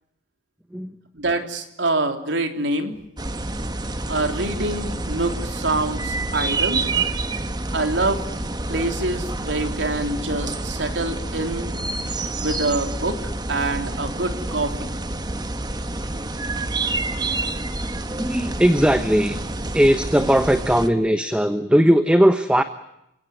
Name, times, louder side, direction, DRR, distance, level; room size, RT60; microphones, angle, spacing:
voice 1, 1.2-3.0 4.1-6.9 7.7-8.2 8.7-11.8 12.4-13.2 13.5-14.9, right 2 dB, 80° right, 6 dB, 3.5 m, -25 dB
sound 1, 3.2-20.9, right 2 dB, 25° right, 1.3 m, -28 dB
voice 2, 18.1-19.4 19.7-22.6, equal, 5° right, 9 dB, 1.1 m, -18 dB
29.5 x 17.0 x 9.6 m, 0.83 s
head